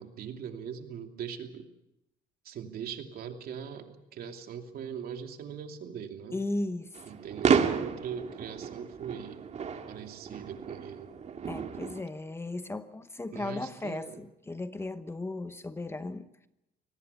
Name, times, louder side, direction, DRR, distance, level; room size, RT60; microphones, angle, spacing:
voice 1, 0.0-1.7 2.4-6.4 7.0-9.4 9.9-11.1 13.3-14.3, right 7 dB, 65° right, 2.8 m, -40 dB
voice 2, 6.3-7.0 11.5-16.3, left 2 dB, 15° left, 1.0 m, -36 dB
sound 1, 6.9-12.0, right 6 dB, 40° right, 1.9 m, -31 dB
23.5 x 19.0 x 6.9 m
cardioid pair, 110°, 17 cm